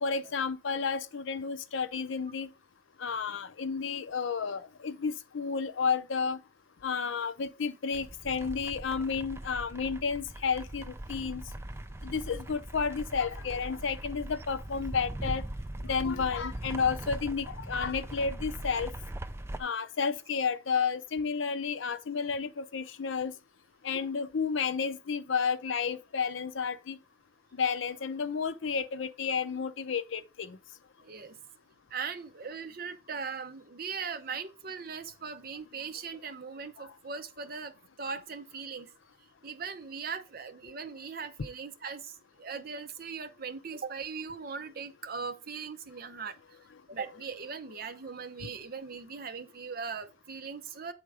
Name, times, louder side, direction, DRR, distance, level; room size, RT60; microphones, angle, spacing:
voice 1, 0.0-2.5 3.0-6.4 6.8-11.4 12.0-15.4 15.8-18.9 19.6-23.3 23.8-27.0 27.5-30.6 36.8-36.9 48.4-48.5, left 5 dB, 75° left, 0.5 m, -31 dB
sound 1, 7.9-19.6, right 1 dB, 15° right, 0.4 m, -40 dB
voice 2, 31.0-31.4 31.9-38.9 39.4-46.4 46.9-50.9, right 5 dB, 50° right, 0.7 m, -39 dB
8.6 x 3.7 x 4.8 m
head